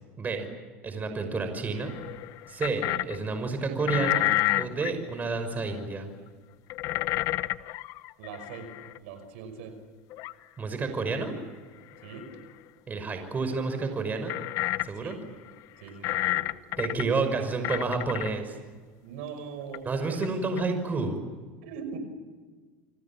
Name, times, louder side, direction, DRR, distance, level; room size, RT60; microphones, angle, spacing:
voice 1, 0.2-0.5 0.8-1.9 2.5-4.3 4.5-6.1 10.6-11.3 12.9-14.3 14.8-15.2 16.0-16.2 16.8-18.6 19.8-21.2, right 4 dB, 25° right, 7 dB, 5.7 m, -30 dB
sound 1, 1.8-3.2 3.8-4.9 5.8-5.9 6.7-9.0 10.1-10.3 11.2-11.3 12.1-12.4 14.3-15.1 15.5-15.6 16.0-17.1 17.6-18.3 19.7-19.8 20.2-20.3 20.6-20.7, left 16 dB, 60° left, 1.0 m, -30 dB
voice 2, 8.2-8.7 8.9-9.7 12.0-12.3 15.0-15.2 15.8-16.4 19.0-20.3 20.9-21.0 21.6-22.0, right 6 dB, 85° right, 8 dB, 5.7 m, -41 dB
29.5 x 25.0 x 7.4 m, 1.4 s
supercardioid pair, 110°, 6 cm